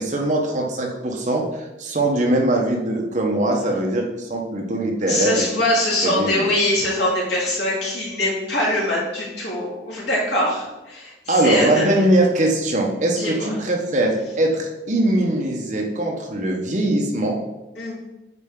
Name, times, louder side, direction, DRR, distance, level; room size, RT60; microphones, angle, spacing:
voice 1, 0.0-5.5 6.1-6.5 11.3-17.4, right 1 dB, 40° right, 0 dB, 1.1 m, -21 dB
voice 2, 5.1-11.9 13.2-13.6 17.7-17.9, left 1 dB, 70° left, -5 dB, 2.6 m, -23 dB
8.0 x 4.4 x 3.8 m, 1.0 s
head